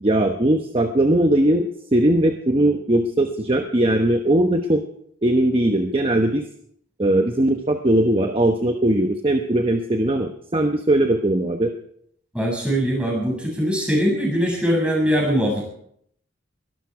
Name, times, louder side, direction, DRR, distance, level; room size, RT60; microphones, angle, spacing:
voice 1, 0.0-4.8 5.2-6.5 7.0-11.7, right 1 dB, 25° right, 5 dB, 1.0 m, -19 dB
voice 2, 12.3-15.6, equal, 5° right, -2 dB, 7.0 m, -21 dB
22.5 x 13.0 x 4.8 m, 0.69 s
head